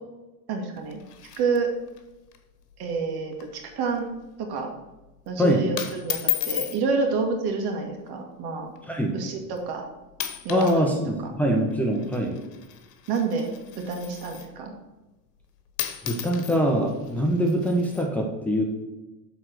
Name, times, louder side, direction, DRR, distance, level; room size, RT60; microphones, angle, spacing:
voice 1, 0.5-1.0 1.4-1.7 2.8-4.1 4.4-4.7 5.3-8.7 9.1-9.8 10.4-11.0 13.1-13.5 13.8-14.7, right 4 dB, 55° right, 3 dB, 1.9 m, -28 dB
sound 1, 0.7-2.0 2.3-2.4 2.7-3.0 3.3-3.6 4.0-4.3 5.0-5.3 5.8-6.8 7.8-8.1 8.8-8.9 9.6-9.8 10.1-10.8 11.1-14.6 15.4-15.5 15.8-18.1, left 12 dB, 80° left, 1.2 m, -34 dB
voice 2, 5.4-5.7 8.9-9.2 10.5-12.4 16.0-18.6, equal, 5° left, -1 dB, 1.2 m, -23 dB
7.6 x 4.0 x 6.4 m, 1.0 s
supercardioid pair, 110°, 47 cm